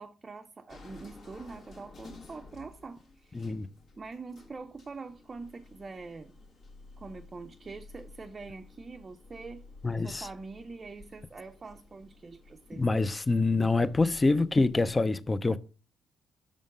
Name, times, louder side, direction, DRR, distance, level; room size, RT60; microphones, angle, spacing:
voice 1, 0.0-3.4 4.0-6.3 7.0-9.7 10.0-12.9, right 4 dB, 30° right, 0.5 m, -44 dB
sound 1, 0.7-15.0, left 3 dB, 60° left, 1.8 m, -53 dB
voice 2, 3.3-3.7 9.8-10.3 12.8-15.6, left 3 dB, 20° left, 0.4 m, -26 dB
6.2 x 3.6 x 5.3 m
cardioid pair, 90°, 0 cm